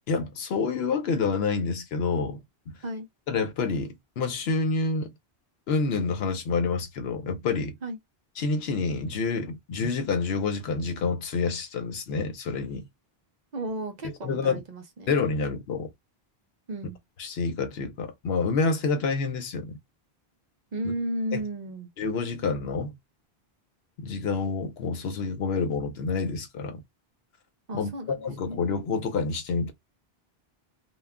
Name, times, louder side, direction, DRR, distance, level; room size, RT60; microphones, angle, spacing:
voice 1, 0.1-2.7 3.3-5.1 5.7-7.7 8.4-12.8 14.2-14.6 15.1-15.9 17.2-19.8 21.3-21.4 22.0-22.9 24.0-26.8 27.7-29.7, left 4 dB, 80° left, 0.9 m, -28 dB
voice 2, 13.5-15.1 16.7-17.0 20.7-21.9 27.7-28.6, right 1 dB, 50° right, 0.6 m, -34 dB
2.3 x 2.2 x 3.5 m
omnidirectional pair, 1.0 m